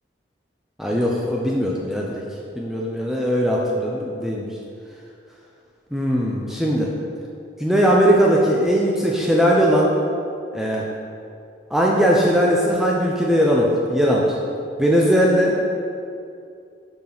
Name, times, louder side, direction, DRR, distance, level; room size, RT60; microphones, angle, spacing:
voice 1, 0.8-2.2 2.6-4.5 5.9-6.9 7.6-9.9 10.5-10.8 11.7-14.3 14.8-15.6, equal, ahead, -3 dB, 0.5 m, -19 dB
7.2 x 6.0 x 3.9 m, 2.4 s
head